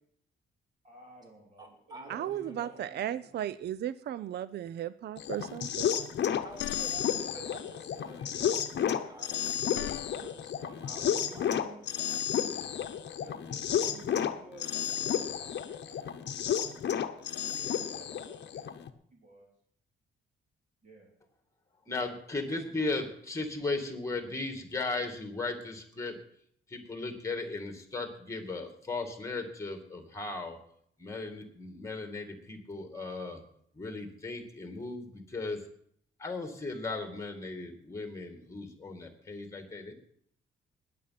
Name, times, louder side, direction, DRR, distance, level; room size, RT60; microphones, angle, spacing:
voice 1, 0.8-3.3 7.8-7.9 10.9-11.8 13.2-17.0 17.4-18.8 19.1-19.5 20.8-21.1, right 2 dB, 35° right, -2 dB, 3.2 m, -54 dB
voice 2, 1.6-2.8 6.4-12.2, right 1 dB, 20° right, 3 dB, 2.3 m, -50 dB
voice 3, 2.1-6.0, right 11 dB, 55° right, 16 dB, 0.5 m, -36 dB
sound 1, 5.2-18.9, left 9 dB, 60° left, 1.0 m, -32 dB
sound 2, 6.3-7.3 9.3-10.5, left 14 dB, 75° left, 0.4 m, -41 dB
voice 4, 21.9-26.2 26.7-30.6 31.0-33.4 33.8-35.6 36.2-39.9, left 3 dB, 15° left, 6 dB, 2.2 m, -36 dB
19.0 x 7.7 x 5.9 m, 0.66 s
wide cardioid pair, 155°, 21 cm